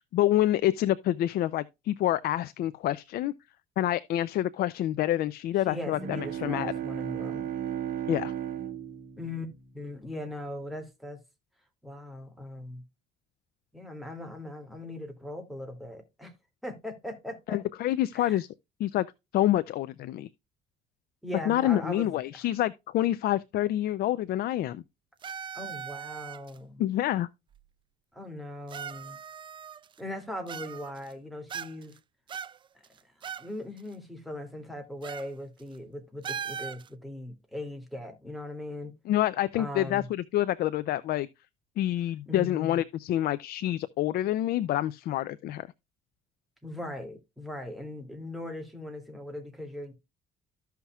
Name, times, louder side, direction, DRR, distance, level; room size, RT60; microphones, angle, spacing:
voice 1, 0.0-3.3 3.8-6.7 8.1-8.3 17.5-18.5 18.8-19.1 19.3-20.3 21.5-24.8 26.8-27.3 39.1-41.3 41.8-45.7, left 13 dB, 65° left, 0.5 m, -27 dB
voice 2, 5.6-7.5 9.2-11.2 11.8-12.8 13.7-16.3 16.6-17.6 18.1-18.4 21.2-22.4 25.5-26.9 28.1-29.2 30.0-32.0 33.2-38.9 39.6-40.1 42.3-42.8 46.6-49.9, left 1 dB, ahead, 2.5 m, -39 dB
Bowed string instrument, 5.8-10.4, right 10 dB, 55° right, 1.2 m, -36 dB
sound 1, 25.2-26.6 27.5-27.6 28.7-30.0 30.5-31.1 31.5-32.0 32.3-33.5 33.8-33.9 35.0-35.3 35.6-35.8 36.2-36.9, right 8 dB, 30° right, 0.3 m, -39 dB
14.0 x 5.7 x 2.3 m
cardioid pair, 110°, 17 cm